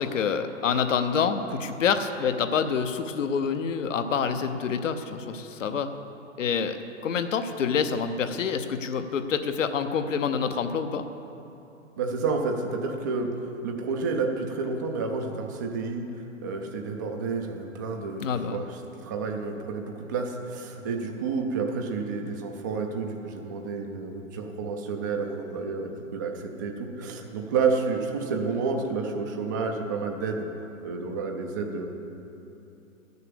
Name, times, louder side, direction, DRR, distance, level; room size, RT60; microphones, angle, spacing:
voice 1, 0.0-5.9 6.4-6.8 7.0-11.0 18.2-18.6, left 6 dB, 65° left, 8 dB, 0.9 m, -27 dB
voice 2, 12.0-16.0 16.4-31.9, right 4 dB, 15° right, 3 dB, 0.3 m, -30 dB
12.0 x 6.7 x 7.0 m, 2.9 s
hypercardioid pair, 130°, 40 cm